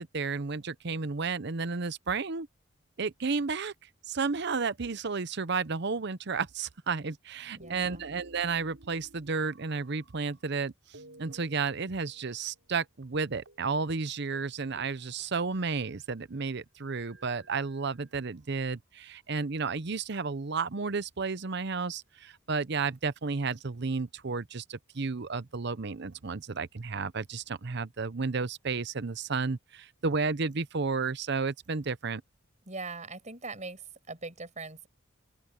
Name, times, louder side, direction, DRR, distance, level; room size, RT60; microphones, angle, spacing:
voice 1, 0.0-2.5 3.0-3.7 4.1-10.7 11.2-32.2, right 4 dB, 55° right, 0.8 m, -32 dB
voice 2, 7.6-8.0 32.7-33.8 34.1-34.9, right 3 dB, 35° right, 7.1 m, -41 dB
sound 1, 7.6-10.6 10.9-12.8 13.0-13.1 13.5-13.6 13.9-14.1 14.3-16.1 16.8-18.4 19.1-20.0, right 1 dB, 75° right, 7.3 m, -56 dB
open air
head